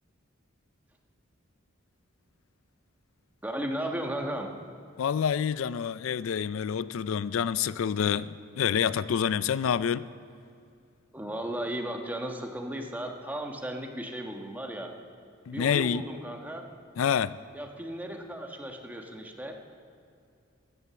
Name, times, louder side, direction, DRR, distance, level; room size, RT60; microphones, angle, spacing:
voice 1, 3.4-4.5 11.1-14.9 15.5-16.7 17.5-19.5, right 1 dB, 10° right, 1.3 m, -35 dB
voice 2, 5.0-10.1 15.5-16.0 17.0-17.3, left 8 dB, 85° left, 0.4 m, -27 dB
16.0 x 11.5 x 7.0 m
head